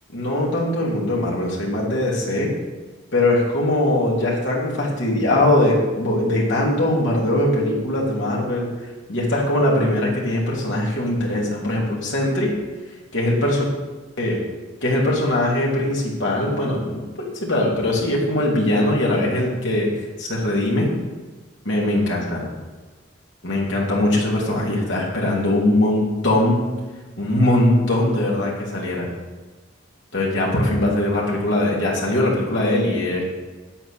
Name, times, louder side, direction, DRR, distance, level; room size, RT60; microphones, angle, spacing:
voice 1, 0.1-2.5 3.1-8.7 9.1-12.5 13.1-13.6 14.2-14.4 14.8-17.0 17.4-19.9 20.2-20.9 21.6-22.4 23.4-26.7 27.2-29.1 30.1-33.2, left 1 dB, 70° left, -4 dB, 3.1 m, -21 dB
8.8 x 8.4 x 6.7 m, 1.3 s
head